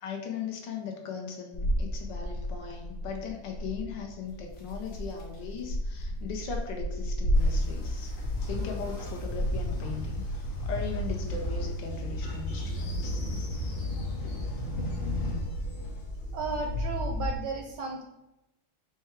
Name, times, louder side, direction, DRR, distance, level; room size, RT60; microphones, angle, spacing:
voice 1, 0.0-8.2 8.5-13.3, left 6 dB, 70° left, 3 dB, 1.1 m, -38 dB
sound 1, 1.5-9.7, equal, 45° left, 0.9 m, -32 dB
Train, 7.4-17.4, left 1 dB, 90° left, 1.9 m, -33 dB
voice 2, 16.3-18.0, right 4 dB, 75° right, 2 dB, 1.0 m, -34 dB
4.4 x 2.3 x 4.3 m, 0.93 s
omnidirectional pair, 2.2 m